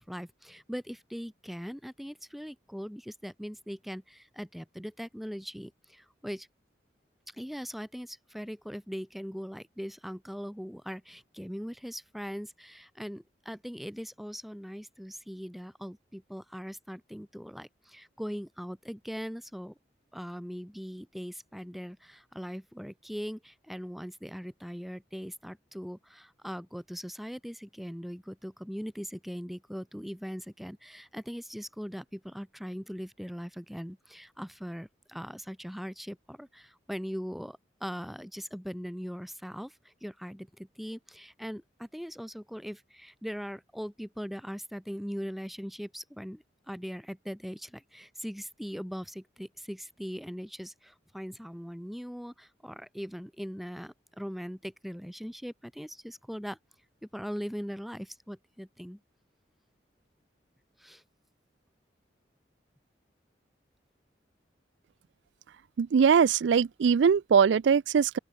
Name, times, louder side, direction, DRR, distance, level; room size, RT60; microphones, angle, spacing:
voice 1, 0.0-6.5 7.3-19.8 20.1-56.6 57.1-59.0 60.8-61.0, equal, ahead, 6.5 m, -40 dB
voice 2, 65.8-68.2, right 6 dB, 75° right, 0.4 m, -22 dB
open air
head